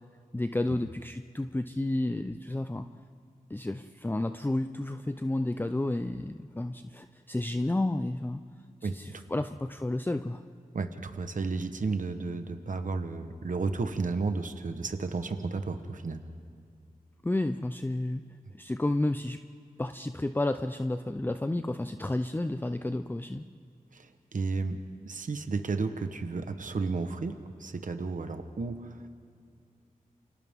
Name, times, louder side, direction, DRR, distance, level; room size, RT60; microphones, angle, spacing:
voice 1, 0.3-2.9 3.5-8.4 8.8-10.4 17.2-18.2 18.6-19.4 19.8-23.5, left 1 dB, 15° left, 8 dB, 0.6 m, -31 dB
voice 2, 10.7-16.2 23.9-29.0, right 4 dB, 60° right, 7 dB, 1.1 m, -33 dB
29.0 x 26.0 x 3.7 m, 2.3 s
wide cardioid pair, 70°, 15 cm